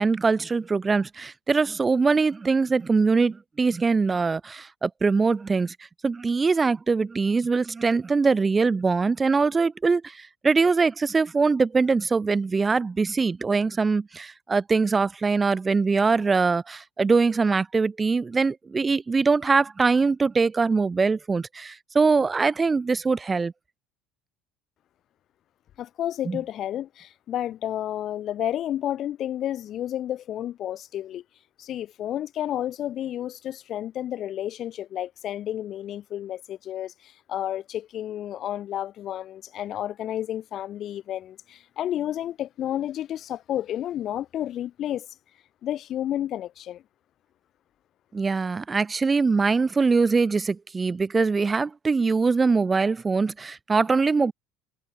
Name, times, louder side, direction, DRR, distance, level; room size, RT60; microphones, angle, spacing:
voice 1, 0.0-5.7 6.0-23.5 26.3-26.4 48.1-54.3, right 4 dB, 20° right, 1.5 m, -22 dB
voice 2, 25.8-31.2 31.6-45.1 45.6-46.8, left 11 dB, 50° left, 2.0 m, -31 dB
supercardioid pair, 110°, 0 cm